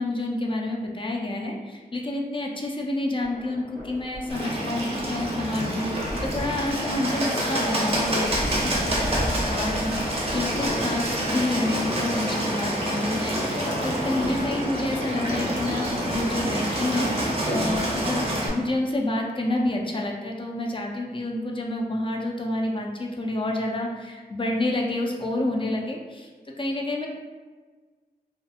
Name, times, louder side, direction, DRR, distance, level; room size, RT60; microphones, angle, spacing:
voice 1, 0.0-26.3 26.6-27.1, left 1 dB, 30° left, -1 dB, 0.4 m, -29 dB
sound 1, 3.2-16.4, equal, 65° left, 0.9 m, -36 dB
Bird, 4.3-18.5, right 1 dB, 40° right, 0.6 m, -27 dB
2.8 x 2.2 x 2.4 m, 1.4 s
wide cardioid pair, 65°, 16 cm